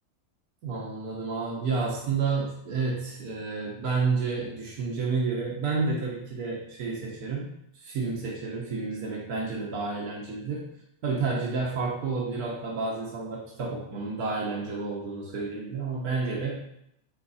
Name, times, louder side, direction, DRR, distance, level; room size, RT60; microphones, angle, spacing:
voice 1, 0.6-7.5 7.8-10.6 11.0-16.6, right 4 dB, 85° right, -2 dB, 1.7 m, -30 dB
8.3 x 3.9 x 4.2 m, 0.76 s
omnidirectional pair, 1.6 m